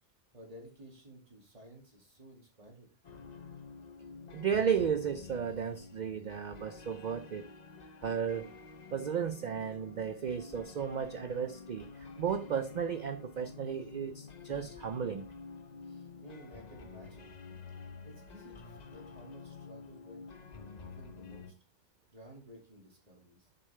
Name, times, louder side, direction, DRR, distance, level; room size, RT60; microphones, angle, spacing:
voice 1, 0.3-2.9 15.8-17.3 18.0-21.5 22.1-23.5, equal, 30° right, 2.3 m, -54 dB
sound 1, 3.0-21.5, left 4 dB, 40° left, 0.7 m, -49 dB
voice 2, 4.3-7.5 8.0-8.5 8.9-11.9 12.2-15.3, right 7 dB, 60° right, 0.5 m, -34 dB
6.9 x 6.7 x 3.3 m
omnidirectional pair, 1.3 m